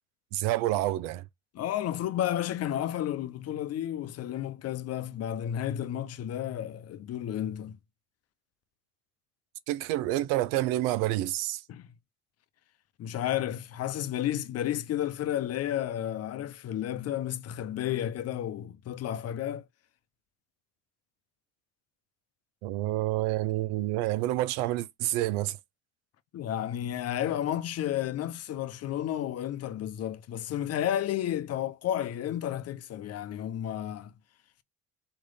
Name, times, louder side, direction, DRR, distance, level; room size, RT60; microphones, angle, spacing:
voice 1, 0.3-1.2 9.7-11.6 22.6-25.6, right 15 dB, 80° right, 0.6 m, -28 dB
voice 2, 1.5-7.8 11.7-11.9 13.0-19.6 26.3-34.1, left 11 dB, 55° left, 0.8 m, -32 dB
4.4 x 3.2 x 3.8 m
supercardioid pair, 70°, 30 cm